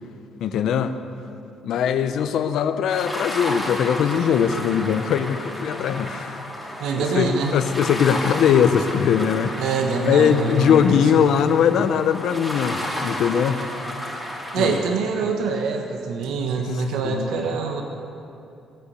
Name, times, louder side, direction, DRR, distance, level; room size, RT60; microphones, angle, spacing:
voice 1, 0.4-0.9 1.6-6.4 7.0-9.6 10.1-13.6 14.6-14.8 16.6-17.5, left 8 dB, 60° left, 10 dB, 0.7 m, -21 dB
sound 1, 2.9-14.8, left 1 dB, 5° right, 2.4 m, -32 dB
voice 2, 6.8-7.6 9.6-11.3 14.5-17.8, right 4 dB, 80° right, 3 dB, 1.3 m, -25 dB
18.0 x 8.3 x 8.2 m, 2.7 s
cardioid pair, 175°, 0 cm